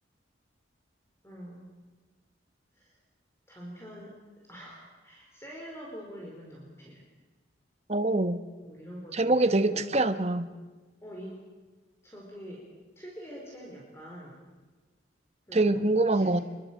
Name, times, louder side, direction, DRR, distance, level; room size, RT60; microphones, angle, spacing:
voice 1, 1.2-1.7 2.7-3.0 3.5-4.1 4.4-7.0 8.6-9.9 11.0-11.4 12.0-12.7 13.0-14.4 15.5-15.8 16.1-16.3, equal, 15° left, -2 dB, 4.6 m, -45 dB
voice 2, 7.9-8.4 9.1-10.5 15.5-16.4, right 2 dB, 35° right, 10 dB, 1.2 m, -24 dB
26.5 x 22.0 x 7.6 m, 1.3 s
head